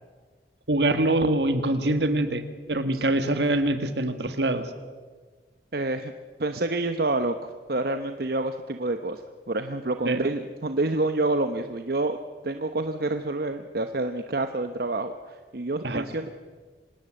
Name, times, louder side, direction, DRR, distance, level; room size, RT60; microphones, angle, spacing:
voice 1, 0.7-2.4 2.7-4.7 10.1-10.3 15.8-16.0, right 1 dB, 75° right, 9 dB, 1.9 m, -24 dB
voice 2, 5.7-6.1 6.4-9.2 9.5-12.2 12.4-16.3, right 2 dB, 60° right, 8 dB, 0.9 m, -28 dB
25.5 x 18.5 x 7.7 m, 1.4 s
head